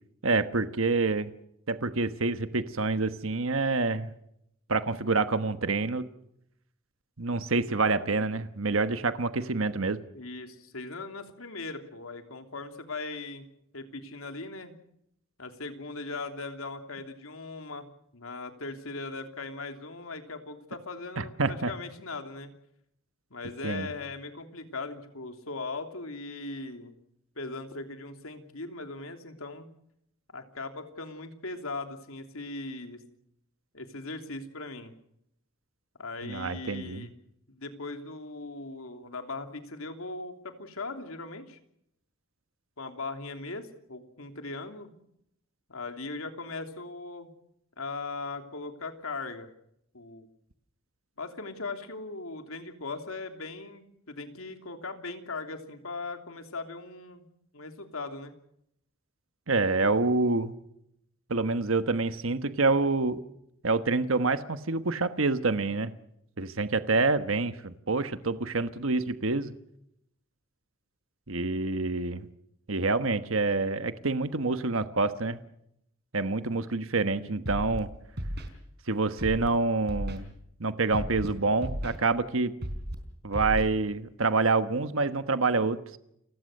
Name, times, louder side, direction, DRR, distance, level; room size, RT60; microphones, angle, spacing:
voice 1, 0.2-1.3 1.7-4.1 4.7-6.1 7.2-10.0 21.2-21.7 23.6-23.9 36.2-37.1 59.5-60.5 61.3-63.2 63.6-65.9 66.4-69.5 71.3-72.3 72.7-75.4 76.1-77.9 78.9-80.3 80.6-82.5 83.2-85.8, right 3 dB, 70° right, 11 dB, 1.3 m, -27 dB
voice 2, 10.1-13.5 13.7-14.7 15.4-17.9 18.1-22.5 23.3-26.9 27.4-29.7 30.3-33.0 33.7-34.9 36.0-37.1 37.5-41.6 42.8-44.9 45.7-47.3 47.8-49.5 49.9-50.3 51.2-57.2 57.5-58.3, left 3 dB, 85° left, 6 dB, 3.1 m, -39 dB
Scratching (performance technique), 77.4-77.8 78.2-78.5 79.2-79.5 79.9-80.2 80.9-81.3 81.6-82.0 82.6-82.9 83.3-83.6, equal, 50° right, 4.2 m, -33 dB
29.5 x 16.5 x 6.6 m, 0.76 s
head